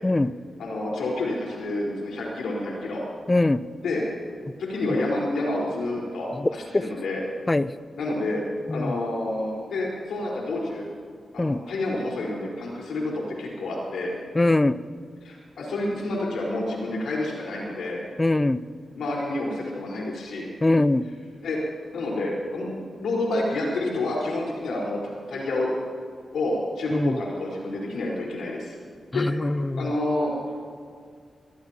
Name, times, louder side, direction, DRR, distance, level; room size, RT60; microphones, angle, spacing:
voice 1, 0.6-3.0 3.8-4.0 4.6-7.2 8.0-8.4 8.7-10.8 11.3-14.1 15.2-18.0 19.0-20.5 21.4-21.6 21.9-25.0 25.3-25.7 26.3-28.8 29.1-30.4, left 2 dB, 90° left, -3 dB, 4.5 m, -29 dB
voice 2, 3.3-3.6 6.4-6.5 7.5-7.7 8.7-8.9 11.4-11.6 14.4-14.8 18.2-18.6 20.6-21.1 26.9-27.2 29.1-29.9, left 2 dB, 25° left, 15 dB, 0.6 m, -22 dB
23.5 x 18.0 x 3.0 m, 2.2 s
cardioid pair, 55°, 0 cm